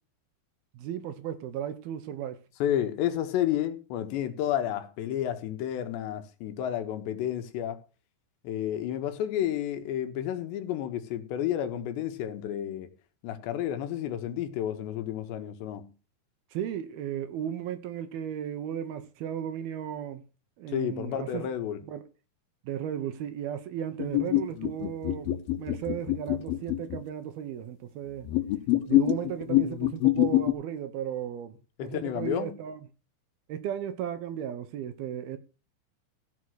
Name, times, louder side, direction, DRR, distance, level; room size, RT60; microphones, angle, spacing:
voice 1, 0.7-2.4 16.5-20.2 20.6-21.5 21.9-22.0 22.6-28.3 28.9-32.8 33.5-35.4, right 9 dB, 70° right, 2.8 m, -35 dB
voice 2, 2.6-7.8 8.4-12.9 13.2-15.9 20.7-21.8 31.8-32.6, left 11 dB, 90° left, 3.6 m, -31 dB
sound 1, 24.0-27.0 28.2-30.5, left 16 dB, 70° left, 2.7 m, -25 dB
15.0 x 5.6 x 6.3 m
omnidirectional pair, 4.9 m